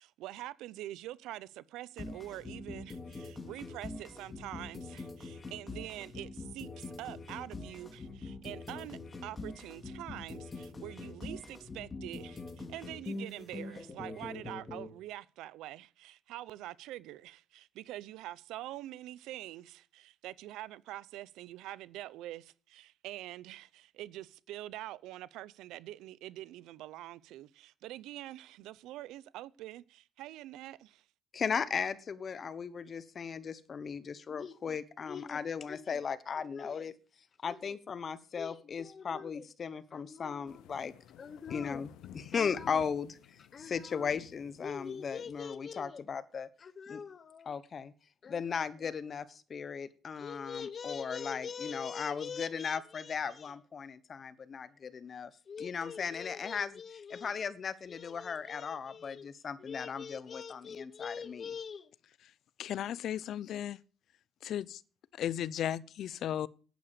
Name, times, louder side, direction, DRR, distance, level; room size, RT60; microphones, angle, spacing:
voice 1, 0.0-31.0, right 15 dB, 85° right, 0.6 m, -45 dB
sound 1, 2.0-14.9, left 3 dB, 20° left, 3.0 m, -44 dB
voice 2, 31.3-36.9 37.4-47.9 48.2-61.9, left 6 dB, 40° left, 1.1 m, -37 dB
sound 2, 40.5-45.5, left 11 dB, 85° left, 0.9 m, -53 dB
voice 3, 62.6-63.8 64.4-64.8 65.1-66.5, left 10 dB, 60° left, 0.6 m, -35 dB
11.5 x 8.7 x 6.8 m
cardioid pair, 120°, 0 cm